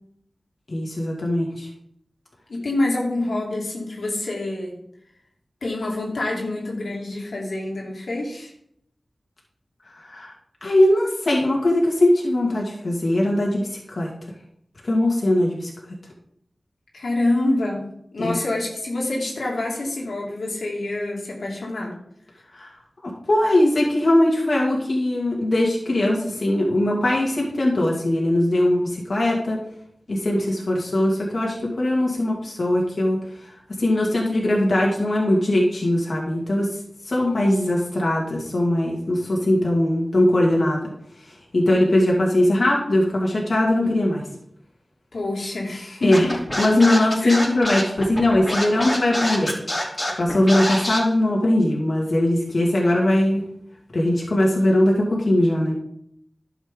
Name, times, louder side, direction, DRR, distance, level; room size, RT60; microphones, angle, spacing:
voice 1, 0.7-1.7 10.0-10.3 10.6-14.1 14.8-15.7 18.2-18.4 22.5-22.7 23.0-29.6 30.1-33.5 33.8-36.7 37.1-40.8 41.5-44.2 46.0-46.3 46.6-49.6 50.2-53.4 53.9-55.7, left 1 dB, 60° left, -3 dB, 2.2 m, -20 dB
voice 2, 2.5-4.7 5.6-8.5 16.9-17.9 18.1-21.9 45.1-46.4 47.2-47.4, left 2 dB, 90° left, -3 dB, 2.5 m, -26 dB
Scratching (performance technique), 46.1-51.0, left 1 dB, 25° left, 3.5 m, -26 dB
11.5 x 7.2 x 3.8 m, 0.71 s
wide cardioid pair, 60°, 0 cm